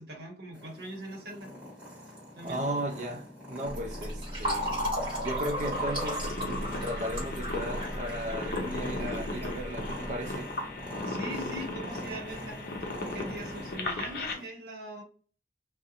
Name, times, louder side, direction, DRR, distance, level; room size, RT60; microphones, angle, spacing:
voice 1, 0.0-1.5 2.3-2.6 11.0-15.0, right 1 dB, 65° right, 0.8 m, -41 dB
Purr, 0.5-14.5, left 1 dB, 10° right, 1.2 m, -43 dB
voice 2, 2.4-4.7 5.2-10.5, equal, 45° right, 0.4 m, -36 dB
Fill (with liquid), 3.7-10.1, equal, 25° right, 1.2 m, -34 dB
sound 1, 5.7-14.3, left 2 dB, 55° left, 0.6 m, -37 dB
2.4 x 2.0 x 2.8 m
head